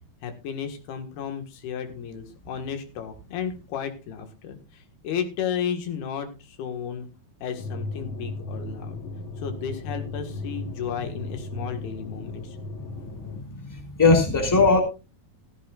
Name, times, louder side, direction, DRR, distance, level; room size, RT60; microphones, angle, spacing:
voice 1, 0.2-7.1 7.4-9.0 9.4-12.6, left 8 dB, 80° left, 6 dB, 3.7 m, -33 dB
sound 1, 7.5-13.4, left 2 dB, 50° left, 1.6 m, -36 dB
voice 2, 12.9-14.8, left 3 dB, 5° left, 1 dB, 2.9 m, -21 dB
15.5 x 14.0 x 2.5 m, 0.29 s
omnidirectional pair, 4.4 m